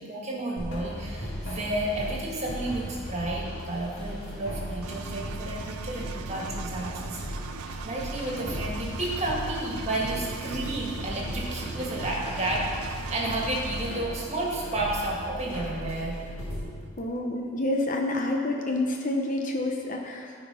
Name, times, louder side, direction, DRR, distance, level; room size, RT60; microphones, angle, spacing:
voice 1, 0.0-7.2 7.8-16.2, right 1 dB, 30° right, -3 dB, 1.8 m, -31 dB
sound 1, 0.6-16.6, equal, 65° left, 2.5 m, -37 dB
sound 2, 0.9-6.4 9.9-14.7, equal, 5° left, 2.4 m, -49 dB
Engine, 4.8-13.9, right 7 dB, 90° right, 0.4 m, -40 dB
voice 2, 17.0-20.3, left 2 dB, 40° left, 2 dB, 0.8 m, -28 dB
13.5 x 4.8 x 5.5 m, 2.1 s
head